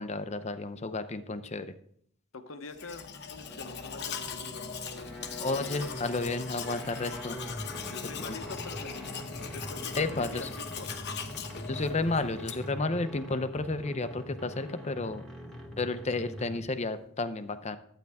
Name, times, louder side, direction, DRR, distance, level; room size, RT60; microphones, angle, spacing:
voice 1, 0.0-1.7 5.4-7.4 8.2-8.4 9.9-10.5 11.7-15.2 15.8-17.8, left 3 dB, 35° left, 11 dB, 0.7 m, -32 dB
voice 2, 2.3-4.8 7.9-10.9, left 3 dB, 85° left, 8 dB, 0.9 m, -45 dB
Domestic sounds home sounds, 2.7-12.8, left 6 dB, 55° left, 0.9 m, -40 dB
sound 1, 3.4-16.8, equal, 5° left, 1.6 m, -43 dB
12.0 x 8.9 x 3.5 m, 0.64 s
head